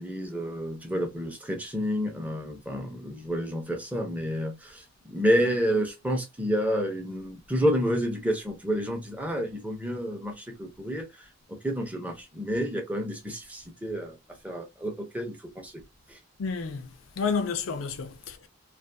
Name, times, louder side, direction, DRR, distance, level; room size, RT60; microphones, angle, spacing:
voice 1, 0.0-11.1 11.5-14.2 14.4-15.7 16.1-16.2, equal, 10° right, 0.6 m, -29 dB
voice 2, 16.4-18.5, left 5 dB, 85° left, 0.5 m, -31 dB
2.5 x 2.4 x 2.5 m
head